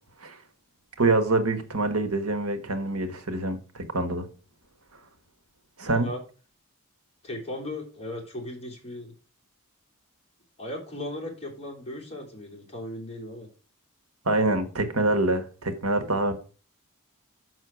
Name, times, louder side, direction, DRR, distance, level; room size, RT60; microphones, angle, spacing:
voice 1, 1.0-4.3 5.8-6.1 14.2-16.3, right 2 dB, 75° right, 1.4 m, -25 dB
voice 2, 5.9-6.2 7.2-9.1 10.6-13.5, left 1 dB, 25° left, 3.1 m, -37 dB
6.4 x 6.1 x 6.1 m
head